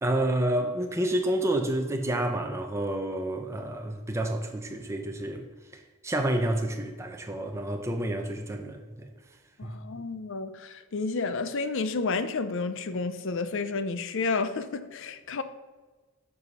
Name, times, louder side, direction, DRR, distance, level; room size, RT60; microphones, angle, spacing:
voice 1, 0.0-5.4 6.0-9.1 9.6-9.7, right 1 dB, 15° right, 0.5 m, -29 dB
voice 2, 9.6-15.4, left 4 dB, 60° left, 0.5 m, -31 dB
7.3 x 4.8 x 5.4 m
head